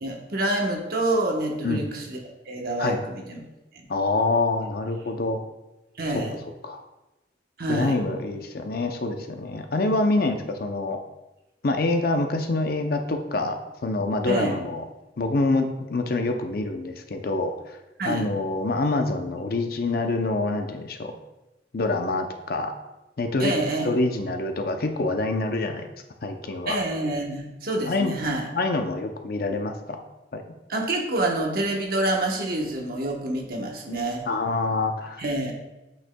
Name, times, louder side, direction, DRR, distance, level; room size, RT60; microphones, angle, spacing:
voice 1, 0.0-2.2 2.5-3.4 6.0-6.4 7.6-8.0 14.3-14.5 18.0-18.3 23.4-23.9 26.7-28.4 30.7-34.2 35.2-35.5, right 1 dB, 55° right, 1 dB, 1.0 m, -27 dB
voice 2, 3.9-5.4 6.1-6.2 6.6-6.8 7.7-11.0 11.6-14.8 15.2-17.5 18.0-21.1 21.7-22.7 23.2-23.5 23.8-25.9 26.2-26.8 27.9-28.1 28.5-30.0 30.3-30.4 34.3-35.2, left 2 dB, 55° left, 5 dB, 0.6 m, -26 dB
8.1 x 6.2 x 2.2 m, 1.0 s
head